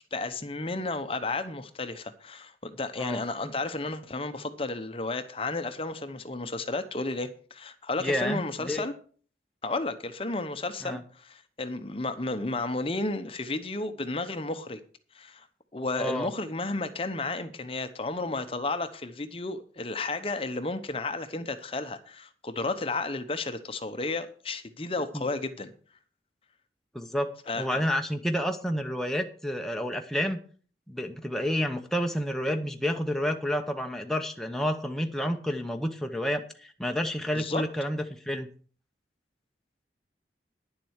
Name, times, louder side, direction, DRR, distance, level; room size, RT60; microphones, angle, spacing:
voice 1, 0.1-8.9 9.6-14.8 15.1-15.5 15.7-25.7 27.5-27.8 37.3-37.7, left 2 dB, 30° left, 0.9 m, -32 dB
voice 2, 8.0-8.8 10.8-11.0 15.9-16.3 25.1-25.3 26.9-27.3 27.6-30.4 30.9-38.5, equal, ahead, 0.8 m, -30 dB
10.5 x 7.5 x 6.4 m
head